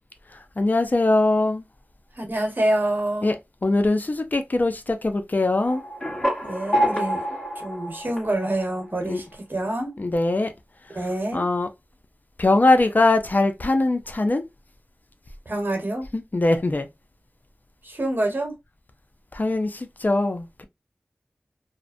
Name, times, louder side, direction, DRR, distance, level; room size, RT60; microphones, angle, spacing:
voice 1, 0.3-1.6 3.2-3.3 3.6-5.8 9.0-9.2 10.0-10.5 11.3-11.7 12.4-14.4 16.1-16.9 19.3-20.6, left 2 dB, 45° left, 0.4 m, -21 dB
voice 2, 2.2-3.3 6.4-9.2 9.5-9.9 10.9-11.4 15.5-16.1 17.8-18.5, right 1 dB, 50° right, 1.0 m, -26 dB
sound 1, 5.7-9.0, equal, 20° left, 1.2 m, -27 dB
2.4 x 2.1 x 2.4 m
wide cardioid pair, 45°, 4 cm